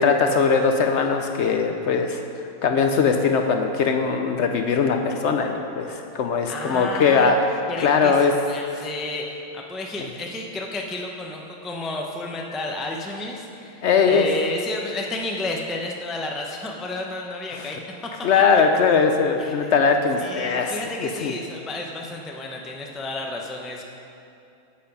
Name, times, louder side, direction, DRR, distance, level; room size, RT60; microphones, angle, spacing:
voice 1, 0.0-2.2 2.6-7.3 7.8-8.3 13.8-14.3 17.5-17.7 18.2-21.3, left 5 dB, 65° left, 4 dB, 0.8 m, -20 dB
voice 2, 6.5-7.4 7.7-18.1 19.4-19.7 20.2-23.8, left 2 dB, ahead, 0 dB, 0.4 m, -32 dB
8.7 x 7.5 x 5.3 m, 2.7 s
omnidirectional pair, 1.4 m